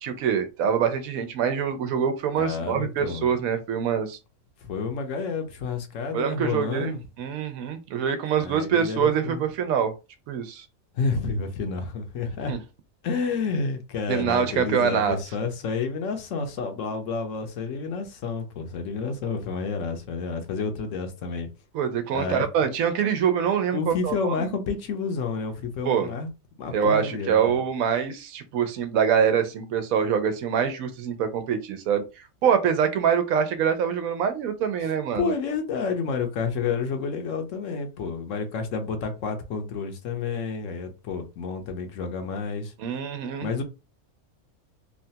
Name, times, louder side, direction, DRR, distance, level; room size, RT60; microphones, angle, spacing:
voice 1, 0.0-4.2 6.1-9.9 10.3-10.7 12.5-12.6 14.1-15.2 21.7-24.5 25.8-26.1 26.7-35.3 42.8-43.5, right 7 dB, 90° right, 1.0 m, -25 dB
voice 2, 2.4-3.3 4.6-7.0 8.4-9.4 10.9-12.6 13.0-21.5 22.1-22.4 23.7-26.3 26.6-27.5 34.8-42.7 43.4-43.6, left 4 dB, 70° left, 1.0 m, -30 dB
3.1 x 2.3 x 2.7 m
omnidirectional pair, 1.4 m